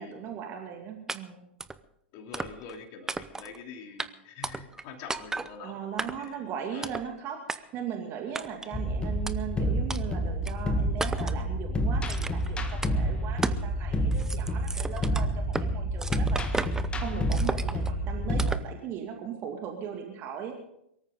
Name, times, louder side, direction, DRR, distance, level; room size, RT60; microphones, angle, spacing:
voice 1, 0.0-1.5 5.6-20.5, right 8 dB, 35° right, 3 dB, 2.3 m, -38 dB
sound 1, 1.1-1.2 1.6-1.8 2.3-2.8 3.1-3.6 4.0-4.1 4.4-4.8 5.1-5.5 6.0-6.4 6.8-7.1 7.5-7.6 8.3-8.7 9.3-9.4 9.9-10.0 10.4-10.5 11.0-11.4 12.1-12.5 12.8-12.9 13.4-13.7 14.0-15.7 16.0-16.9 17.3-17.9 18.4-18.7, right 3 dB, 10° right, 0.7 m, -34 dB
voice 2, 2.1-6.4 6.7-6.9, left 5 dB, 45° left, 3 dB, 3.0 m, -45 dB
sound 2, 8.7-18.5, equal, 15° left, 1.7 m, -29 dB
23.0 x 14.0 x 3.8 m, 0.77 s
figure-of-eight pair, 100°, 6 cm